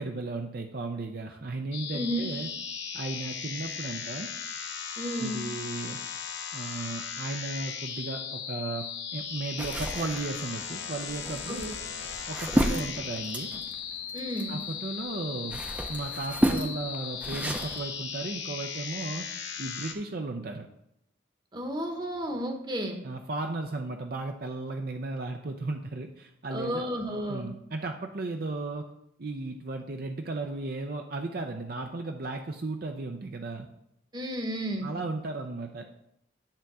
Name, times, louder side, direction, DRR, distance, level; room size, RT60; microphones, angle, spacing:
voice 1, 0.0-2.5 2.9-4.3 5.2-6.0 6.5-11.8 12.3-13.5 14.5-15.6 15.9-19.3 19.6-20.7 23.0-26.9 27.3-28.9 29.2-33.7 34.8-35.8, right 2 dB, 50° right, 4 dB, 0.5 m, -35 dB
sound 1, 1.7-19.9, left 7 dB, 70° left, 0.9 m, -37 dB
voice 2, 1.9-2.2 5.0-5.5 11.5-11.6 14.1-14.6 21.5-23.0 26.5-27.5 34.1-34.9, equal, 20° right, 4 dB, 1.0 m, -32 dB
sound 2, 9.6-14.8 15.2-17.8, equal, 5° right, 0.6 m, -31 dB
10.5 x 3.5 x 6.1 m, 0.77 s
head